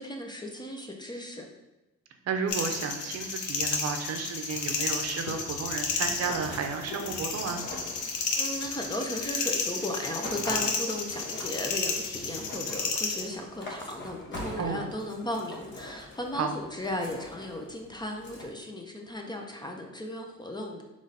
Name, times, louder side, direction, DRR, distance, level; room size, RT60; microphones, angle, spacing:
voice 1, 0.0-1.5 8.3-20.8, left 1 dB, 15° left, 2 dB, 0.6 m, -36 dB
voice 2, 2.2-7.6 14.6-14.9 16.3-16.5, right 5 dB, 55° right, 5 dB, 0.6 m, -32 dB
sound 1, 2.5-13.2, left 4 dB, 80° left, 0.7 m, -32 dB
sound 2, 4.6-18.4, left 1 dB, 40° left, 1.0 m, -44 dB
3.9 x 3.1 x 4.0 m, 1.0 s
cardioid pair, 90°, 30 cm